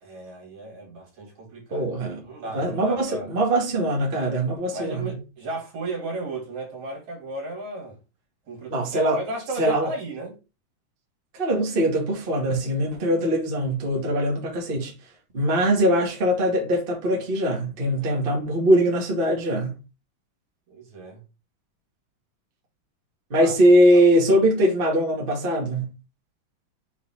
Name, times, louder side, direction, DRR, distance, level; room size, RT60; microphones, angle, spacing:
voice 1, 0.0-3.3 4.7-8.0 8.5-10.4 18.0-18.2 20.7-21.2 23.4-23.6 23.8-24.1, right 2 dB, 65° right, 3.5 m, -35 dB
voice 2, 1.7-5.1 8.7-9.2 9.6-9.9 11.3-14.9 15.3-19.8 23.3-25.9, right 1 dB, 20° right, 1.7 m, -22 dB
7.0 x 4.3 x 4.4 m
omnidirectional pair, 3.6 m